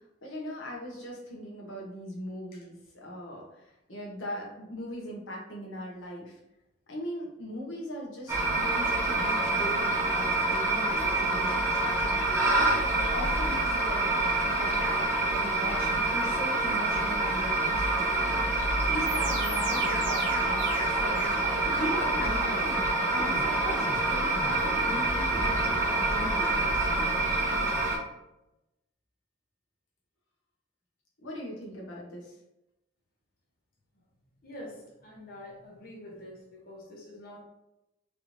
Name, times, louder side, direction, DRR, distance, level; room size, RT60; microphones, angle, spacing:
voice 1, 0.2-3.4 3.9-6.3 6.9-12.6 12.9-18.4 18.9-21.3 21.7-22.7 23.1-26.7 31.2-32.3, equal, 85° left, -2 dB, 1.0 m, -39 dB
sound 1, 8.3-28.0, right 2 dB, 15° right, 0.7 m, -27 dB
sound 2, 19.0-27.9, right 1 dB, 65° right, 0.9 m, -40 dB
voice 2, 34.4-37.4, left 1 dB, 45° left, -2 dB, 0.8 m, -46 dB
3.3 x 3.0 x 2.6 m, 0.91 s
head